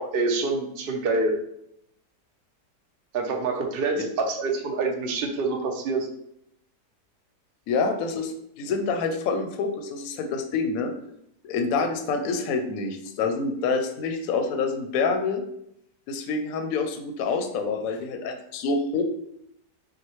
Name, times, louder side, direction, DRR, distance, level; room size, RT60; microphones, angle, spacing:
voice 1, 0.0-1.3 3.1-6.1, right 3 dB, 60° right, 2 dB, 0.6 m, -26 dB
voice 2, 7.7-10.9 11.4-15.4 16.1-19.0, left 4 dB, 70° left, 6 dB, 0.9 m, -27 dB
6.1 x 2.2 x 3.0 m, 0.74 s
omnidirectional pair, 1.8 m